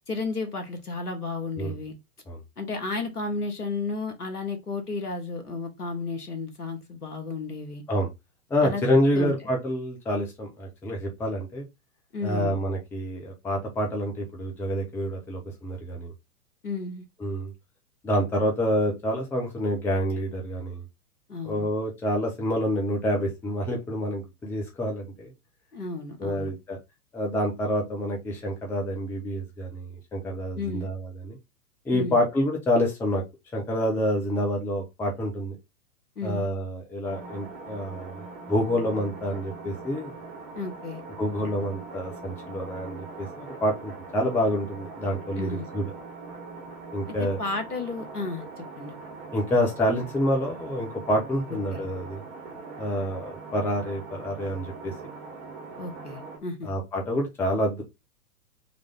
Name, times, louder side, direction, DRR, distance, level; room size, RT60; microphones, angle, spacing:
voice 1, 0.1-1.9 2.6-7.8 8.6-8.8 9.1-9.3 12.1-12.6 16.6-17.0 21.3-21.7 25.7-26.5 30.5-30.9 31.9-32.2 36.2-36.5 40.5-41.0 45.4-45.7 47.1-49.0 51.7-51.8 55.8-56.7, left 3 dB, 80° left, 1.5 m, -33 dB
voice 2, 8.5-11.6 12.2-16.1 17.2-17.5 18.0-20.8 21.4-25.3 26.2-26.8 27.1-31.4 31.8-33.2 33.5-35.6 36.2-38.2 38.5-40.1 41.2-45.9 46.9-47.4 49.3-52.2 52.8-54.9 56.6-57.8, equal, 5° left, 0.6 m, -27 dB
sound 1, 37.0-56.4, right 4 dB, 40° right, 2.0 m, -42 dB
3.8 x 3.2 x 3.6 m
figure-of-eight pair, 105°, 45 cm